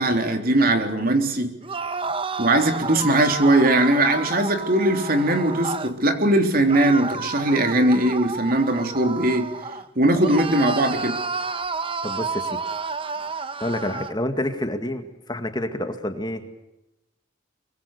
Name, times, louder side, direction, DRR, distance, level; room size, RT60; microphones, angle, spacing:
voice 1, 0.0-1.5 2.4-9.5 10.0-11.2, right 1 dB, 50° right, 5 dB, 3.5 m, -20 dB
sound 1, 1.6-6.0 6.7-9.9 10.2-14.2, right 4 dB, 25° right, 1.1 m, -30 dB
voice 2, 12.0-12.6 13.6-16.6, left 1 dB, 20° left, 7 dB, 2.0 m, -28 dB
24.0 x 24.0 x 6.7 m, 0.96 s
head